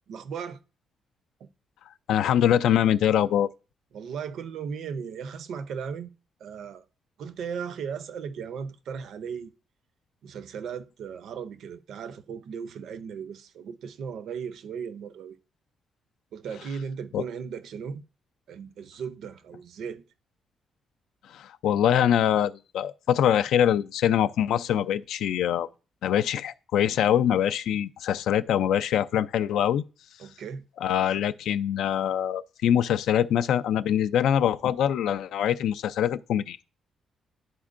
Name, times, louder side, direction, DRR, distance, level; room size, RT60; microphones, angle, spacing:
voice 1, 0.1-0.6 1.4-1.5 3.9-6.1 6.4-6.8 7.2-9.5 10.2-15.4 16.3-18.0 18.5-20.0 30.2-30.7, right 6 dB, 65° right, 0.5 m, -36 dB
voice 2, 2.1-3.5 17.1-17.2 21.3-25.7 26.0-29.8 30.8-36.6, left 10 dB, 85° left, 0.3 m, -24 dB
11.0 x 4.3 x 2.5 m
cardioid pair, 170°, 0 cm